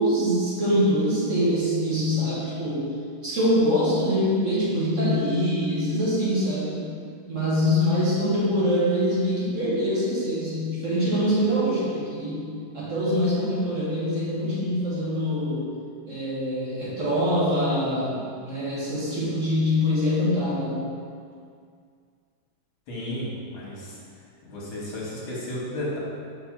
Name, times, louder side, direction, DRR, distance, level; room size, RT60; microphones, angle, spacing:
voice 1, 0.0-2.9 3.2-6.8 7.3-12.4 12.7-15.7 16.1-20.9, equal, 40° right, -9 dB, 1.8 m, -24 dB
voice 2, 22.9-24.0 24.4-26.0, left 1 dB, 80° left, -6 dB, 2.3 m, -33 dB
5.6 x 4.3 x 5.8 m, 2.2 s
omnidirectional pair, 2.2 m